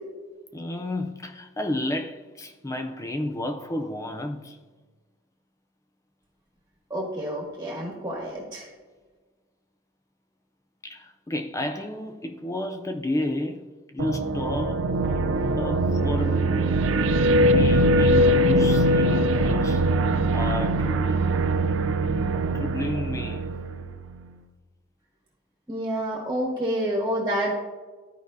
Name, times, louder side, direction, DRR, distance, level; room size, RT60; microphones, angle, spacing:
voice 1, 0.5-4.6 10.8-15.0 15.6-16.7 17.1-19.9 20.3-21.3 22.5-23.5, left 1 dB, 15° left, 0.3 m, -31 dB
voice 2, 6.9-8.7 25.7-27.5, right 1 dB, 15° right, 1.2 m, -28 dB
sound 1, 14.0-24.2, right 1 dB, 70° right, 0.4 m, -22 dB
13.5 x 4.8 x 2.6 m
head